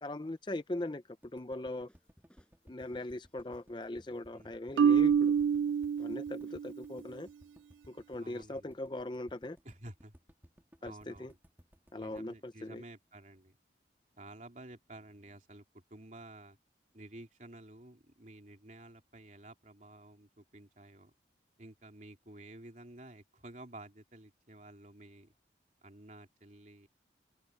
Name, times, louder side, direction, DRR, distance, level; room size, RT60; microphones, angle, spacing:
voice 1, 0.0-1.9 2.7-5.3 6.0-7.3 7.9-9.6 10.8-11.3 11.9-12.8, left 1 dB, 25° left, 0.5 m, -40 dB
sound 1, 1.2-13.4, equal, 10° right, 2.4 m, -61 dB
sound 2, 1.9-3.7 4.0-5.0 5.4-5.7 6.0-6.2 6.5-7.1, equal, 5° left, 5.4 m, -66 dB
Marimba xylophone, 4.8-6.8, right 7 dB, 85° right, 0.3 m, -27 dB
voice 2, 8.2-8.7 9.6-10.1 10.8-11.4 11.9-13.6 14.2-16.6 16.9-21.1 21.6-25.3 25.8-26.9, right 1 dB, 40° right, 3.3 m, -52 dB
open air
head